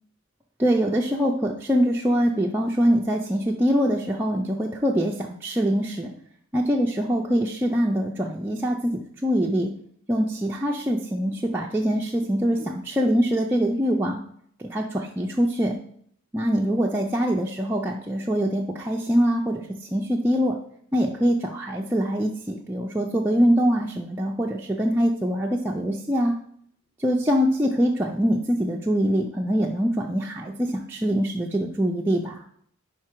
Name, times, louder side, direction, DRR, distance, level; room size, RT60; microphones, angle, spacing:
voice 1, 0.6-6.1 6.5-9.7 10.1-14.2 14.6-15.8 16.3-20.6 20.9-26.3 27.0-32.4, equal, 10° right, -2 dB, 0.4 m, -23 dB
4.8 x 4.7 x 4.4 m, 0.63 s
head